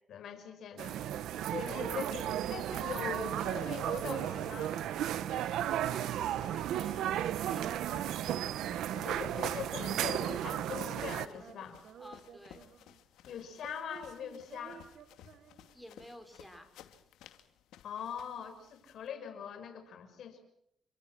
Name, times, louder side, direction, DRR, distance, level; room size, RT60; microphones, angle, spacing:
voice 1, 0.1-1.0 1.4-4.8 8.9-11.8 13.2-14.9 17.8-20.5, left 7 dB, 70° left, 7 dB, 6.2 m, -42 dB
Female singing, 0.7-11.0 11.3-13.0 13.3-15.9, right 8 dB, 65° right, 1.7 m, -53 dB
sound 1, 0.8-11.3, right 11 dB, 80° right, 1.2 m, -34 dB
sound 2, 3.1-19.1, left 10 dB, 90° left, 2.6 m, -58 dB
voice 2, 5.8-8.2 12.0-12.6 15.7-16.7, equal, ahead, 7 dB, 5.6 m, -53 dB
29.0 x 24.5 x 6.2 m, 0.75 s
cardioid pair, 90°, 0 cm